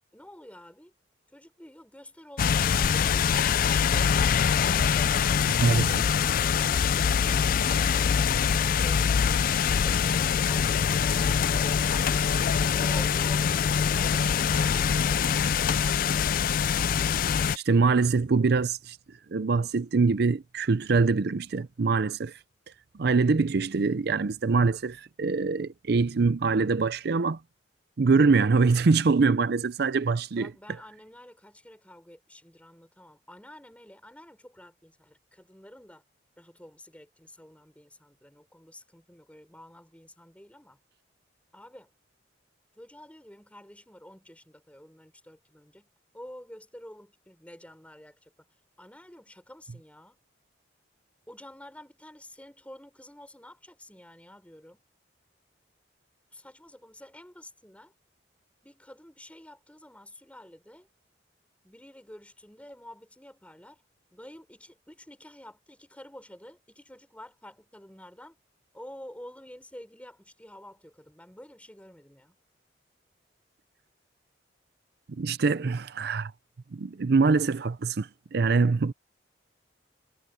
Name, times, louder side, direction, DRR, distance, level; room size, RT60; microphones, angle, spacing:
voice 1, 0.1-0.9 1.3-4.1 12.7-15.7 30.3-36.0 36.4-40.8 41.5-41.9 42.7-48.3 48.8-50.2 51.3-54.8 56.3-57.9 58.6-60.9 61.6-63.8 64.1-68.4 68.7-72.4, left 1 dB, 5° left, 4.9 m, -49 dB
sound 1, 2.4-17.6, left 7 dB, 50° left, 0.3 m, -24 dB
voice 2, 5.6-5.9 17.6-19.0 19.3-22.4 23.0-27.4 28.0-30.5 75.2-76.3 76.7-78.9, right 4 dB, 60° right, 0.5 m, -24 dB
head